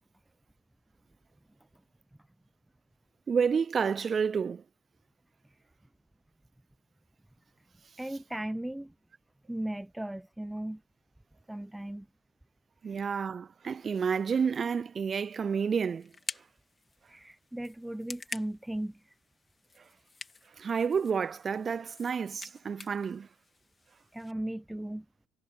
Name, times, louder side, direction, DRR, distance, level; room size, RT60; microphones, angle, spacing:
voice 1, 3.3-4.6 12.8-16.1 20.6-23.3, right 6 dB, 40° right, 0.4 m, -30 dB
voice 2, 8.0-8.9 9.5-10.8 11.5-12.1 12.8-13.0 17.1-19.1 24.1-25.1, right 1 dB, 5° right, 0.7 m, -37 dB
sound 1, 15.1-24.3, left 4 dB, 25° left, 3.1 m, -48 dB
hypercardioid pair, 60°, 0 cm